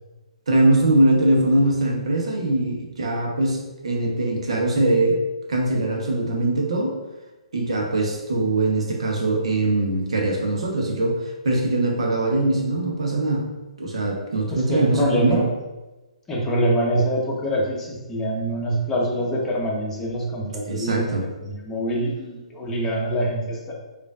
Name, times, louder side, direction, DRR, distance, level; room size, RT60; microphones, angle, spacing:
voice 1, 0.5-5.2 5.5-6.9 7.5-13.5 13.8-15.5 20.7-21.2, right 2 dB, 65° right, 0 dB, 0.9 m, -22 dB
voice 2, 14.5-15.5 16.3-21.1 21.4-23.7, right 1 dB, 10° left, -4 dB, 0.9 m, -25 dB
5.0 x 2.5 x 2.4 m, 1.1 s
figure-of-eight pair, 125°, 3 cm